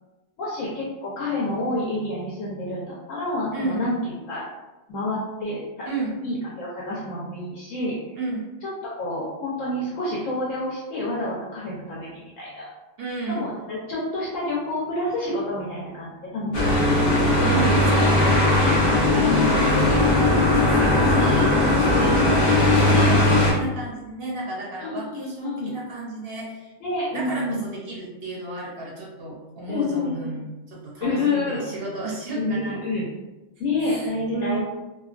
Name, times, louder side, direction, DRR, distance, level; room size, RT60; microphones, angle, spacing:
voice 1, 0.4-3.9 4.3-4.5 4.9-5.9 6.2-8.2 8.6-8.7 9.0-12.7 13.3-17.0 19.3-19.4 21.8-22.5 24.8-25.7 26.8-27.6 29.7-30.3 31.0-31.6 32.4-33.1 33.6-34.6, left 2 dB, 80° left, -6 dB, 1.0 m, -28 dB
voice 2, 3.5-3.9 5.8-6.2 8.2-8.5 13.0-13.5 17.5-19.4 19.7-26.7 27.1-32.9 33.8-34.6, right 2 dB, 60° right, -3 dB, 0.7 m, -33 dB
sound 1, 16.5-23.5, left 2 dB, 55° left, 0.7 m, -18 dB
2.6 x 2.2 x 2.3 m, 1.1 s
omnidirectional pair, 1.4 m